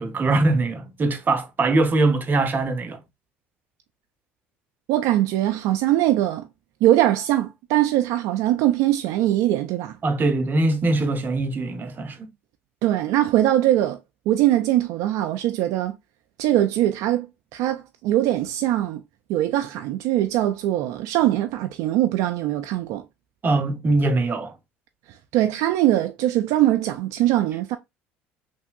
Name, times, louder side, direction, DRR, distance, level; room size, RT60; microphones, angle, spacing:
voice 1, 0.0-3.0 10.0-12.3 23.4-24.5, right 2 dB, 35° right, 0.8 m, -22 dB
voice 2, 4.9-6.5 6.8-10.0 12.8-14.0 14.3-16.0 16.4-17.3 17.5-19.0 19.3-23.0 25.3-27.8, right 13 dB, 70° right, 0.4 m, -21 dB
3.3 x 2.7 x 2.2 m
hypercardioid pair, 70°, 6 cm